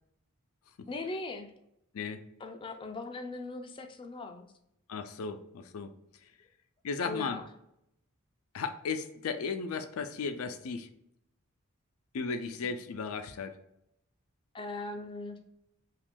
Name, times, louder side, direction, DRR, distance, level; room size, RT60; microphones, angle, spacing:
voice 1, 0.9-1.5 2.4-4.5 7.0-7.5 14.5-15.4, left 2 dB, 25° left, 5 dB, 0.4 m, -39 dB
voice 2, 4.9-5.9 6.8-7.4 8.5-10.9 12.1-13.6, left 5 dB, 85° left, 8 dB, 0.4 m, -35 dB
2.9 x 2.5 x 3.6 m, 0.79 s
head